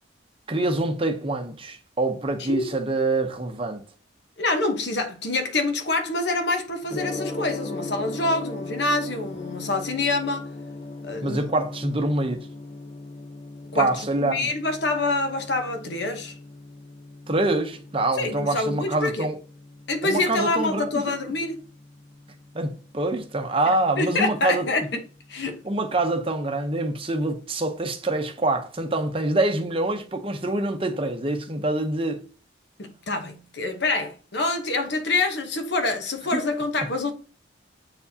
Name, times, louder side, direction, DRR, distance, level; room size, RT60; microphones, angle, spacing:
voice 1, 0.5-3.8 11.2-12.5 13.7-14.5 17.3-19.4 20.0-21.1 22.5-24.7 25.6-32.2 36.3-36.4, right 2 dB, 25° right, 0.8 m, -25 dB
voice 2, 4.4-10.5 11.0-11.4 13.7-16.3 18.1-19.3 19.9-21.6 24.0-25.0 25.3-25.6 32.8-37.1, left 2 dB, 55° left, 1.0 m, -26 dB
Gong, 6.9-25.9, left 2 dB, 35° left, 0.7 m, -39 dB
7.7 x 4.7 x 2.8 m
head